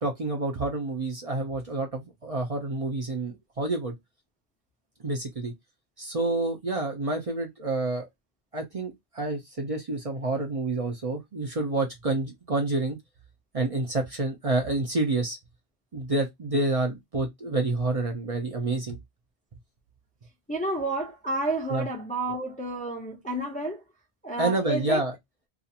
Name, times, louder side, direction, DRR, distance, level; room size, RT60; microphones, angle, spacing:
voice 1, 0.0-3.9 5.0-5.5 6.0-8.0 8.5-13.0 13.5-15.4 15.9-19.0 21.7-21.8 24.4-25.1, right 2 dB, 40° right, 0.7 m, -28 dB
voice 2, 20.5-23.8 24.2-25.0, right 2 dB, 10° left, 0.5 m, -30 dB
2.5 x 2.4 x 2.7 m
omnidirectional pair, 1.1 m